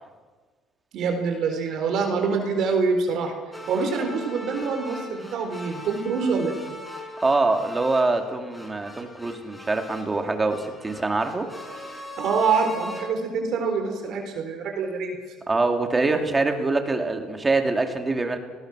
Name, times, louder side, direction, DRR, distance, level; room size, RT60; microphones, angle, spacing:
voice 1, 0.9-3.3 3.7-6.7 12.2-15.2, right 5 dB, 55° right, 4 dB, 4.1 m, -25 dB
sound 1, 3.5-13.1, left 1 dB, 5° left, 4.5 m, -40 dB
voice 2, 7.2-11.5 15.5-18.4, right 3 dB, 15° right, 5 dB, 2.4 m, -24 dB
29.0 x 19.5 x 6.2 m, 1.4 s
cardioid pair, 150°, 0 cm